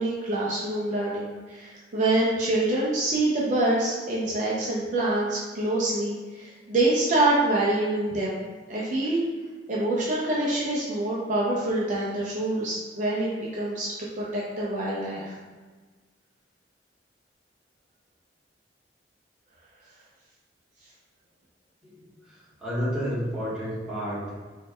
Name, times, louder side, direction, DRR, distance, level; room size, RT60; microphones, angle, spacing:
voice 1, 0.0-8.4 8.7-9.2 9.7-15.3, right 2 dB, 45° right, -5 dB, 0.5 m, -26 dB
voice 2, 21.8-24.3, equal, 5° right, -11 dB, 1.3 m, -31 dB
4.5 x 3.1 x 2.2 m, 1.4 s
head